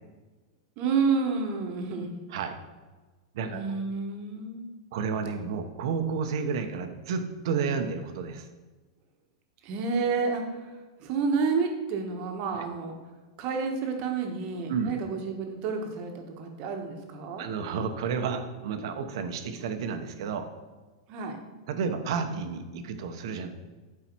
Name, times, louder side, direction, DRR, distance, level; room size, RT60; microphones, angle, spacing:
voice 1, 0.8-2.2 3.5-4.7 9.6-10.7 11.0-13.0 13.4-17.4 21.1-21.4, right 5 dB, 35° right, 3 dB, 1.4 m, -30 dB
voice 2, 3.3-3.8 4.9-8.5 14.7-14.9 17.4-20.5 21.7-23.5, right 5 dB, 60° right, 7 dB, 1.0 m, -31 dB
11.5 x 4.8 x 4.6 m, 1.3 s
supercardioid pair, 155°, 3 cm